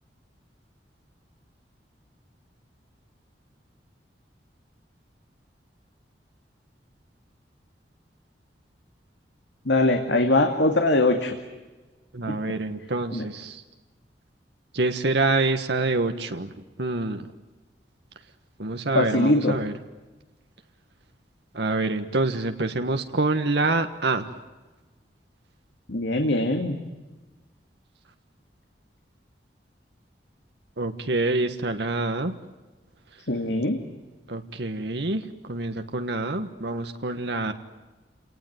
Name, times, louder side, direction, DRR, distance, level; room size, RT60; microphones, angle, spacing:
voice 1, 9.7-11.3 12.3-12.4 13.1-13.2 18.9-19.6 25.9-26.7 33.3-33.8, left 2 dB, 90° left, 5 dB, 2.3 m, -22 dB
voice 2, 12.1-13.6 14.7-17.3 18.6-19.7 21.5-24.2 30.8-32.3 34.3-37.5, right 2 dB, 70° right, 6 dB, 1.4 m, -26 dB
29.0 x 19.0 x 9.5 m, 1.2 s
head